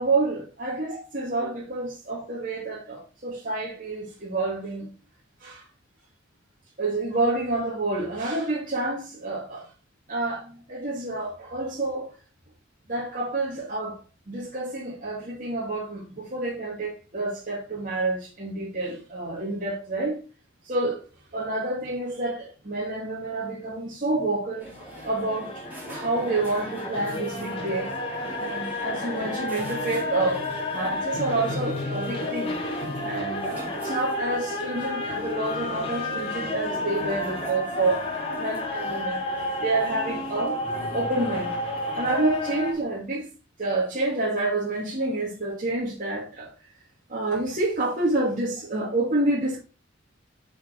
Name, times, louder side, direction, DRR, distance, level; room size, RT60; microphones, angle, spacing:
voice 1, 0.0-4.9 5.4-5.6 6.8-9.7 10.1-12.1 12.9-20.2 20.7-21.0 21.3-24.7 25.0-30.4 30.7-32.6 33.0-38.0 38.3-39.3 39.6-40.6 40.9-43.3 43.6-46.5 47.1-49.6, right 2 dB, 45° right, 2.4 m, -28 dB
sound 1, 24.5-42.7, left 2 dB, 30° left, 2.6 m, -31 dB
sound 2, 24.6-42.8, equal, 10° right, 3.2 m, -42 dB
7.4 x 5.8 x 3.8 m
head